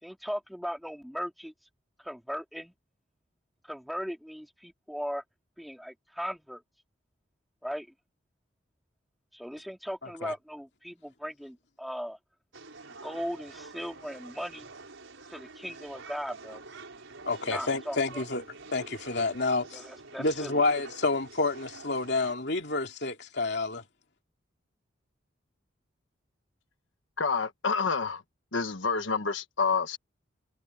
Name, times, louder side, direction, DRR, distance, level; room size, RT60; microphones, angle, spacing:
voice 1, 0.0-1.5 2.0-2.7 3.6-5.2 5.6-6.6 7.6-7.9 9.3-12.2 13.0-14.7 15.3-16.6 17.5-18.2 19.7-20.6, equal, ahead, 3.7 m, -38 dB
voice 2, 10.0-10.3 17.3-18.4 18.7-19.8 20.2-23.8, left 3 dB, 60° left, 2.9 m, -29 dB
sound 1, 12.5-22.3, right 3 dB, 85° right, 4.9 m, -47 dB
voice 3, 27.2-28.2 28.5-30.0, left 5 dB, 80° left, 1.4 m, -28 dB
head